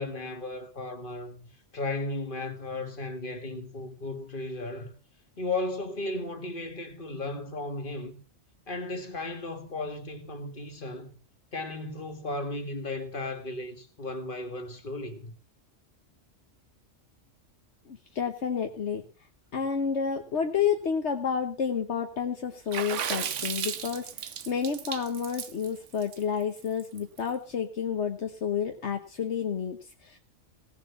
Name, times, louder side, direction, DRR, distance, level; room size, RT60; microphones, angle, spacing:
voice 1, 0.0-5.0 5.4-8.1 8.7-11.2 11.5-15.3, left 2 dB, 45° left, 2.2 m, -35 dB
voice 2, 17.9-19.0 19.5-30.2, left 7 dB, 70° left, 1.5 m, -30 dB
Water / Splash splatter, 22.7-27.2, right 8 dB, 85° right, 1.3 m, -34 dB
18.0 x 7.2 x 7.0 m
omnidirectional pair, 1.2 m